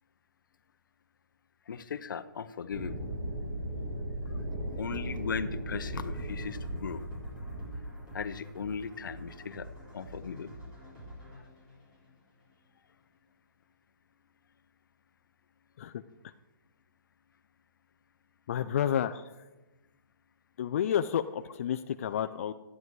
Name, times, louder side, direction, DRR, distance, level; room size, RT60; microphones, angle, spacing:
voice 1, 1.7-3.1 4.7-7.0 8.1-10.5, left 6 dB, 70° left, 14 dB, 0.7 m, -38 dB
sound 1, 2.7-9.0, right 1 dB, 50° right, 2.7 m, -37 dB
sound 2, 5.9-12.7, equal, 10° right, 3.5 m, -48 dB
voice 2, 18.5-19.3 20.6-22.5, left 9 dB, 40° left, 9 dB, 0.4 m, -30 dB
13.5 x 9.6 x 4.7 m, 1.1 s
hypercardioid pair, 165°, 11 cm